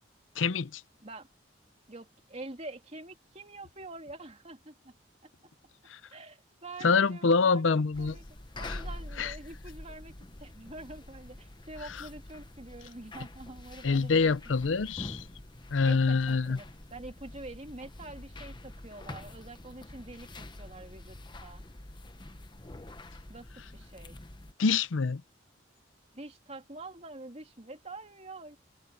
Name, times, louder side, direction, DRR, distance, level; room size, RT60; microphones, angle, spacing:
voice 1, 0.4-0.8 5.9-6.0 6.8-8.2 8.6-8.8 9.2-9.3 13.8-15.2 15.7-16.6 24.6-25.2, left 4 dB, 80° left, 0.6 m, -26 dB
voice 2, 1.9-4.9 5.2-5.3 6.1-8.2 8.6-10.1 10.4-14.5 15.8-21.6 23.3-23.5 23.7-24.2 26.1-28.6, right 2 dB, 35° right, 2.9 m, -46 dB
sound 1, 7.9-24.5, left 1 dB, 25° left, 1.0 m, -46 dB
head